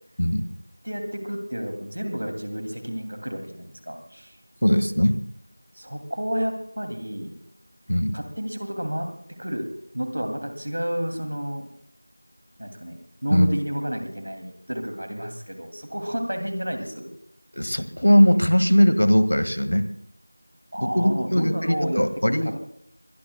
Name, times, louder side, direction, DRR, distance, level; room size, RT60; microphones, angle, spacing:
voice 1, 0.2-0.5 4.6-5.2 7.9-8.2 13.3-13.5 17.5-19.9 20.8-22.5, equal, 75° left, 11 dB, 1.8 m, -20 dB
voice 2, 0.8-4.4 5.7-7.3 8.1-9.7 9.9-11.7 12.6-17.1 20.7-22.6, equal, 40° right, 6 dB, 2.6 m, -31 dB
24.0 x 22.0 x 2.3 m, 0.66 s
figure-of-eight pair, 180°, 0 cm